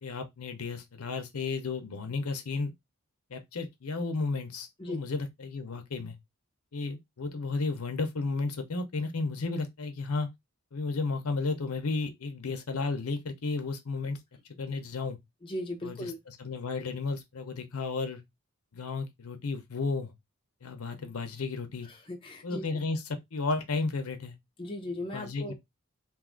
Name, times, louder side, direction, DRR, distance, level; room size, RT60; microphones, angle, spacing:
voice 1, 0.0-2.7 3.3-6.2 6.7-10.3 10.7-14.2 14.6-15.2 15.8-18.2 18.7-20.1 20.6-21.9 22.4-24.4 25.1-25.5, left 3 dB, 80° left, 0.7 m, -33 dB
voice 2, 15.4-16.2 21.9-22.6 24.6-25.5, left 1 dB, 25° left, 0.6 m, -37 dB
2.6 x 2.4 x 3.7 m
head